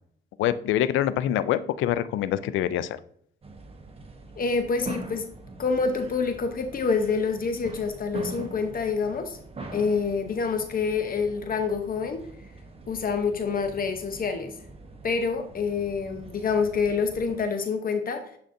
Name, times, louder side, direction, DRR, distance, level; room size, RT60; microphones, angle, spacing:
voice 1, 0.4-3.0, left 11 dB, 85° left, 15 dB, 0.4 m, -25 dB
sound 1, 3.4-17.4, right 3 dB, 30° right, 1.0 m, -43 dB
voice 2, 4.4-5.3 5.6-9.4 9.7-12.2 12.9-14.5 15.0-18.2, left 5 dB, 45° left, 6 dB, 0.7 m, -27 dB
10.0 x 4.0 x 2.6 m, 0.63 s
cardioid pair, 90°, 20 cm